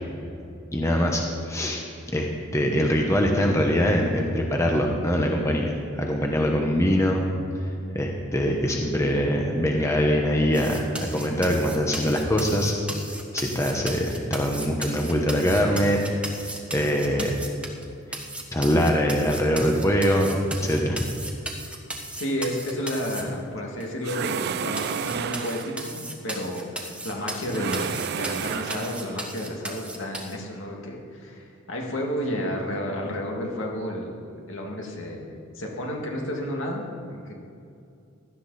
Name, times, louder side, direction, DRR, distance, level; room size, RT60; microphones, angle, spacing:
voice 1, 0.7-1.8 2.1-7.2 7.9-12.7 13.3-16.0 16.3-16.5 16.7-17.4 18.5-21.0, equal, 15° left, 1 dB, 1.0 m, -23 dB
sound 1, 10.5-17.8 18.1-23.2 23.8-23.9 24.3-24.4 24.8-30.3, right 1 dB, 5° right, 1.1 m, -36 dB
voice 2, 22.2-37.3, equal, 65° left, -1 dB, 2.3 m, -31 dB
sound 2, 24.0-25.9 27.5-29.2, right 7 dB, 50° right, 0.3 m, -31 dB
16.5 x 12.5 x 4.2 m, 2.5 s
head